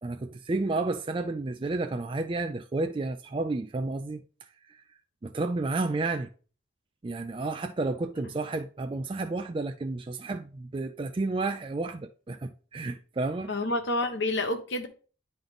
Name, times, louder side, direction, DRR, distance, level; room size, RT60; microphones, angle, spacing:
voice 1, 0.0-4.8 5.2-6.3 7.0-13.5, right 3 dB, 25° right, 0.3 m, -31 dB
voice 2, 13.5-14.9, left 2 dB, 65° left, 1.1 m, -28 dB
10.0 x 3.9 x 3.5 m
head